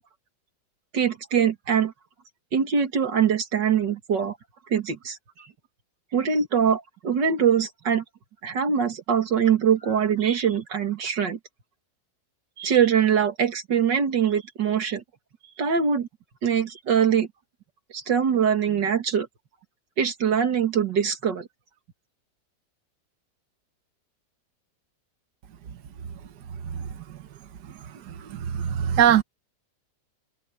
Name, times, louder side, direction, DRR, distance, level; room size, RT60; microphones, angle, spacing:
voice 1, 0.9-1.9 2.5-4.4 4.7-5.5 6.1-8.0 8.4-11.4 12.6-15.0 15.6-16.1 16.4-17.3 17.9-19.3 20.0-21.5, right 7 dB, 90° right, 2.7 m, -23 dB
voice 2, 28.5-29.2, right 9 dB, 70° right, 1.6 m, -19 dB
open air
omnidirectional pair, 1.9 m